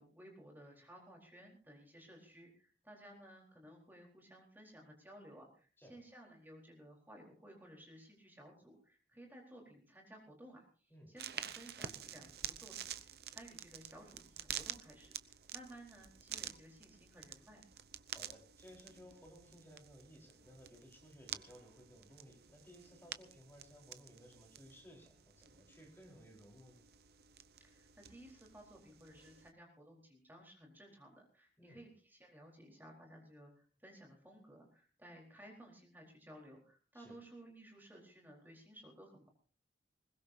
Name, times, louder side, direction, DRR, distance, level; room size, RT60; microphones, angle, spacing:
voice 1, 0.0-17.6 27.6-39.3, right 1 dB, 10° right, 0 dB, 4.2 m, -57 dB
sound 1, 11.2-29.5, right 10 dB, 55° right, 0.8 m, -49 dB
voice 2, 18.1-26.8 31.6-31.8 36.9-37.2, equal, 10° left, 0 dB, 4.3 m, -59 dB
21.5 x 20.5 x 2.8 m, 0.39 s
head